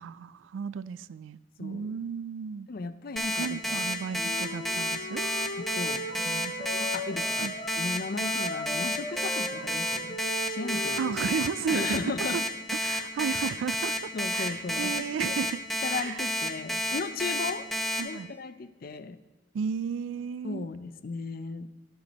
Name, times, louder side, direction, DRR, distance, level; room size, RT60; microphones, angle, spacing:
voice 1, 0.0-2.7 3.4-5.2 6.3-6.7 7.4-7.5 11.0-12.4 12.8-15.6 15.9-16.3 18.0-18.3 19.5-20.7, right 6 dB, 85° right, 18 dB, 0.3 m, -34 dB
voice 2, 1.6-1.9 2.7-3.8 4.1-4.2 5.6-6.1 6.7-10.2 10.5-11.1 11.7-12.4 14.1-14.9 15.2-15.4 15.8-17.7 18.0-19.2 20.4-21.7, left 4 dB, 50° left, 13 dB, 0.5 m, -36 dB
Alarm, 3.2-18.0, equal, ahead, 0.9 m, -30 dB
Wind instrument woodwind instrument, 4.2-7.9 8.2-12.1, equal, 25° left, 1.4 m, -38 dB
12.5 x 7.8 x 4.1 m, 1.2 s
head